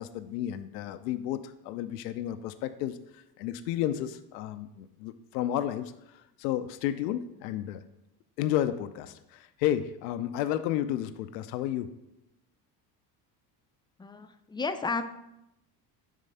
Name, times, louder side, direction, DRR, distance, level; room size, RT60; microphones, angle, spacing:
voice 1, 0.0-5.9 6.4-7.8 8.4-11.9, left 11 dB, 80° left, 11 dB, 0.6 m, -32 dB
voice 2, 14.0-15.0, left 4 dB, 10° left, 9 dB, 0.4 m, -32 dB
7.4 x 3.2 x 5.5 m, 0.87 s
hypercardioid pair, 70°, 48 cm